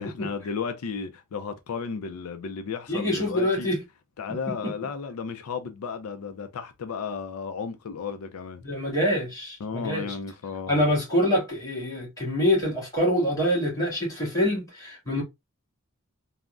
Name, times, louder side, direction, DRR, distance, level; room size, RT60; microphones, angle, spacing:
voice 1, 0.0-3.7 4.2-8.6 9.6-10.8, left 5 dB, 90° left, 0.4 m, -34 dB
voice 2, 2.9-3.8 4.6-4.7 8.6-10.2 10.7-15.2, left 1 dB, 15° left, 1.9 m, -25 dB
3.4 x 2.0 x 2.4 m
head